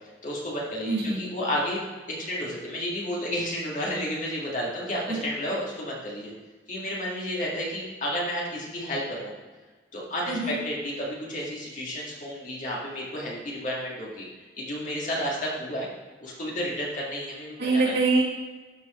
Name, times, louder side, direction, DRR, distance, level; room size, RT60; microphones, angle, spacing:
voice 1, 0.2-6.3 6.7-9.3 9.9-14.3 14.6-15.9 16.2-17.9, equal, 45° left, -4 dB, 2.0 m, -31 dB
voice 2, 0.9-1.2 5.1-5.2 10.3-10.5 17.6-18.2, right 3 dB, 70° right, -5 dB, 2.4 m, -24 dB
12.5 x 4.6 x 3.2 m, 1.3 s
head